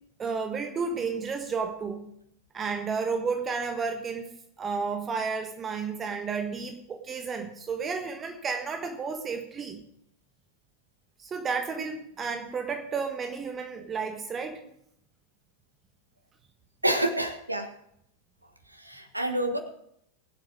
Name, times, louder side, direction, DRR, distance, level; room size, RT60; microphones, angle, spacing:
voice 1, 0.2-2.1 2.5-4.3 4.6-9.8 11.2-14.6, right 5 dB, 20° right, 6 dB, 1.4 m, -32 dB
voice 2, 16.8-17.7 18.8-19.6, right 1 dB, 85° right, 7 dB, 1.5 m, -28 dB
22.0 x 7.8 x 4.8 m, 0.74 s
figure-of-eight pair, 90°, 0 cm